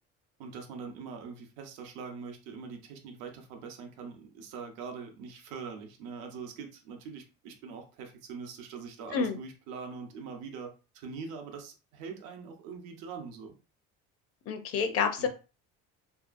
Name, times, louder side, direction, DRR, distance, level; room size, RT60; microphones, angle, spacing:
voice 1, 0.4-13.5 15.2-15.3, right 5 dB, 85° right, 4 dB, 0.8 m, -43 dB
voice 2, 14.5-15.3, left 5 dB, 50° left, 8 dB, 0.6 m, -28 dB
2.7 x 2.3 x 2.5 m, 0.32 s
cardioid pair, 115°, 30 cm